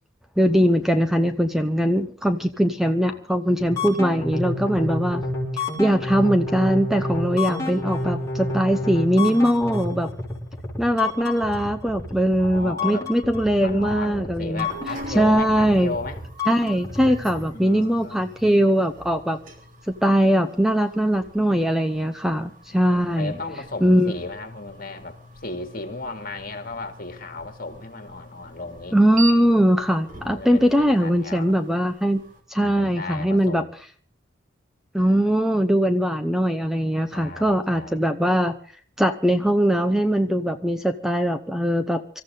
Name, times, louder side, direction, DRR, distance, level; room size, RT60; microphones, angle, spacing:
voice 1, 0.4-5.2 5.5-10.1 10.8-14.7 15.1-15.9 16.5-19.4 20.0-23.3 23.8-24.1 28.9-32.2 32.5-33.6 34.9-38.6 39.0-42.2, equal, ahead, 7 dB, 0.8 m, -21 dB
voice 2, 3.1-3.4 12.4-13.1 13.6-16.2 17.5-18.2 22.7-29.0 30.2-31.6 32.6-33.7 35.0-35.3 37.1-38.1, left 2 dB, 45° left, 7 dB, 2.5 m, -35 dB
sound 1, 3.6-17.4, left 2 dB, 15° left, 5.7 m, -29 dB
sound 2, 14.5-32.4, right 2 dB, 40° right, 3.3 m, -42 dB
25.5 x 14.5 x 3.8 m, 0.42 s
head